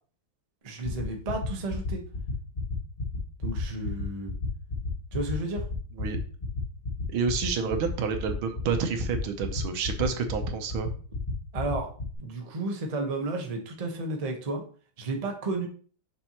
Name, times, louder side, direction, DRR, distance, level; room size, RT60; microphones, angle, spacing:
voice 1, 0.6-2.0 3.4-4.3 5.1-5.7 11.5-11.9 12.2-14.6 15.0-15.7, right 2 dB, 30° right, 2 dB, 0.7 m, -32 dB
sound 1, 0.8-12.1, left 1 dB, 25° left, 1.7 m, -32 dB
voice 2, 7.1-10.9, right 6 dB, 80° right, 6 dB, 1.7 m, -29 dB
6.9 x 5.5 x 2.9 m, 0.42 s
omnidirectional pair, 2.2 m